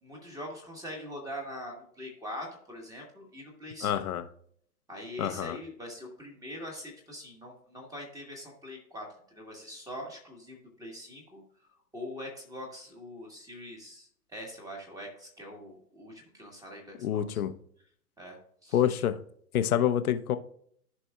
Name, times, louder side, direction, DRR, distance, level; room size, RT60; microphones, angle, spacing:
voice 1, 0.0-4.0 4.9-11.4 11.9-17.4 18.2-18.8, left 1 dB, 5° right, 0 dB, 1.5 m, -43 dB
voice 2, 3.8-4.2 5.2-5.6 17.0-17.5 18.7-19.2 19.5-20.4, left 10 dB, 60° left, 11 dB, 0.9 m, -27 dB
14.5 x 5.3 x 2.4 m, 0.65 s
hypercardioid pair, 130°, 49 cm